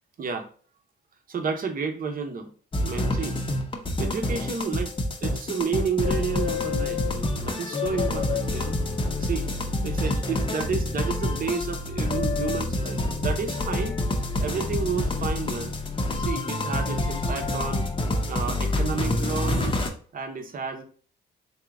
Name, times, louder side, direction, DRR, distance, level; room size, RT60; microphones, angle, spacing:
voice 1, 1.3-2.5 2.8-3.4 4.0-4.9 5.2-8.8 9.2-9.5 9.8-14.0 14.4-15.7 16.1-17.8 18.3-19.8 20.1-20.8, right 5 dB, 45° right, 5 dB, 0.8 m, -31 dB
sound 1, 2.7-19.9, left 1 dB, 25° left, 0.7 m, -27 dB
sound 2, 6.0-7.1 7.7-9.4 10.9-11.5 12.1-12.6 13.5-14.1 15.0-15.3, left 9 dB, 70° left, 0.7 m, -33 dB
3.5 x 2.9 x 3.5 m, 0.43 s
cardioid pair, 90°, 20 cm